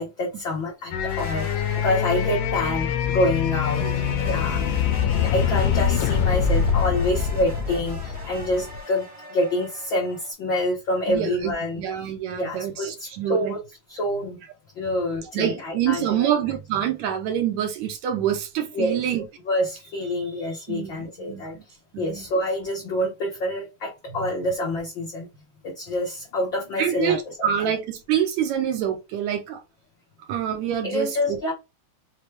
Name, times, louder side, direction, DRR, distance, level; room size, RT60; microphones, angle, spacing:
voice 1, 0.0-3.8 4.2-11.8 12.3-13.6 13.9-14.4 14.7-16.3 18.7-19.0 19.5-21.6 22.0-25.3 25.6-27.5 30.8-31.5, left 1 dB, 65° left, 1.2 m, -27 dB
sound 1, 0.9-8.8, left 8 dB, 85° left, 2.4 m, -24 dB
sound 2, 1.1-3.0 3.6-10.3, right 1 dB, 20° right, 0.9 m, -41 dB
voice 2, 3.8-4.4 11.1-13.6 15.3-19.2 20.7-21.6 21.9-22.2 24.2-24.3 26.8-29.6 30.3-31.5, right 10 dB, 75° right, 1.7 m, -26 dB
6.2 x 2.3 x 3.2 m
omnidirectional pair, 3.7 m